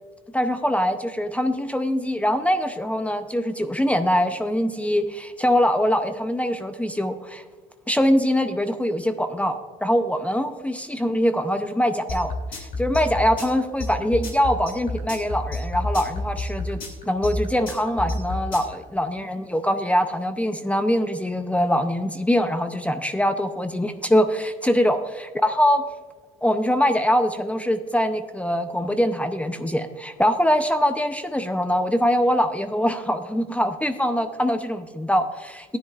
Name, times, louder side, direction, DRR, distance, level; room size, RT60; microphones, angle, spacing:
voice 1, 0.3-7.4 7.9-25.1 25.4-25.9 26.4-35.8, equal, 10° left, 9 dB, 0.6 m, -23 dB
sound 1, 12.1-18.7, left 2 dB, 55° left, 2.5 m, -29 dB
14.5 x 10.0 x 2.4 m, 1.4 s
cardioid pair, 110°, 17 cm